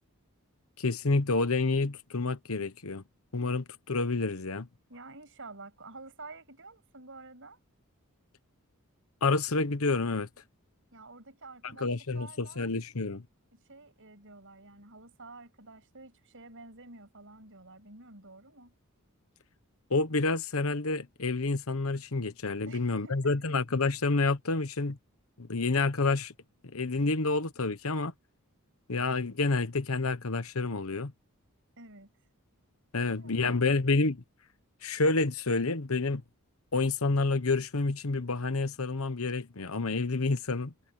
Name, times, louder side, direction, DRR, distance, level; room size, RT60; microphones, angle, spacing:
voice 1, 0.8-3.0 3.3-4.7 9.2-10.3 11.8-13.2 19.9-25.0 25.4-26.3 26.6-28.1 28.9-31.1 32.9-34.2 34.8-36.2 36.7-40.7, left 3 dB, 70° left, 1.1 m, -29 dB
voice 2, 4.9-7.6 10.9-12.7 13.5-18.7 22.7-23.6 31.8-32.1 32.9-33.8, right 3 dB, 60° right, 7.9 m, -50 dB
head